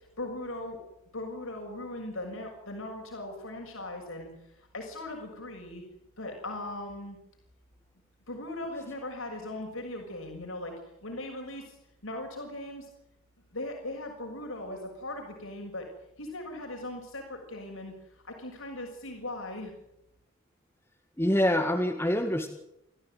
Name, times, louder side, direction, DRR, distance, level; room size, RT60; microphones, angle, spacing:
voice 1, 0.2-0.8 1.1-4.3 4.6-5.8 6.2-7.2 8.3-10.7 11.0-11.8 12.0-12.9 13.5-15.9 16.2-17.9 18.2-19.7, left 1 dB, 70° left, 1 dB, 6.7 m, -39 dB
voice 2, 21.2-22.5, left 1 dB, 10° left, 3 dB, 1.9 m, -25 dB
28.5 x 15.5 x 9.4 m, 0.84 s
head